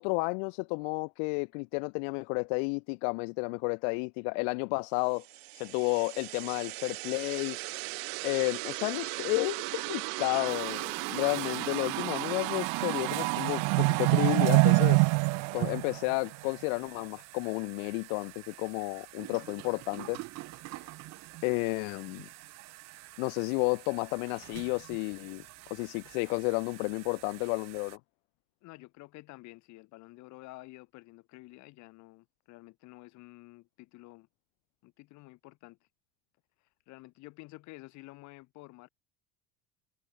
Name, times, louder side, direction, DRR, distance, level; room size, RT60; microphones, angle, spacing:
voice 1, 0.0-5.2 5.5-7.6 8.2-15.1 15.5-20.2 21.4-22.3 23.2-25.4 25.7-28.0, left 40 dB or more, 85° left, 1.2 m, -32 dB
sound 1, 5.7-16.4, right 40 dB or more, 80° right, 1.1 m, -29 dB
sound 2, 10.5-28.0, right 18 dB, 50° right, 6.1 m, -46 dB
voice 2, 28.6-34.3 34.8-35.8 36.9-38.9, left 21 dB, 55° left, 3.7 m, -50 dB
cardioid pair, 175°, 34 cm